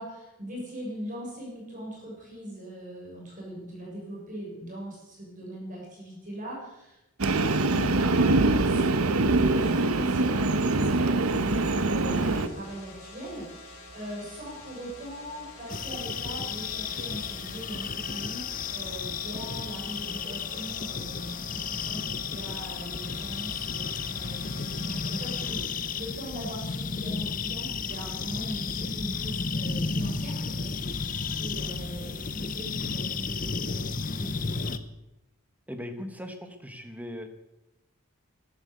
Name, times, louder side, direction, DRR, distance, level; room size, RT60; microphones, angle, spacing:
voice 1, 0.0-34.3, equal, 35° right, -3 dB, 6.5 m, -40 dB
Train, 7.2-12.5, right 2 dB, 80° right, 1.0 m, -24 dB
sound 1, 12.0-25.5, left 1 dB, 65° left, 5.6 m, -47 dB
sound 2, 15.7-34.8, left 5 dB, 35° left, 0.8 m, -33 dB
voice 2, 35.7-37.3, left 1 dB, 5° right, 7 dB, 1.4 m, -39 dB
14.0 x 11.5 x 8.1 m, 0.93 s
head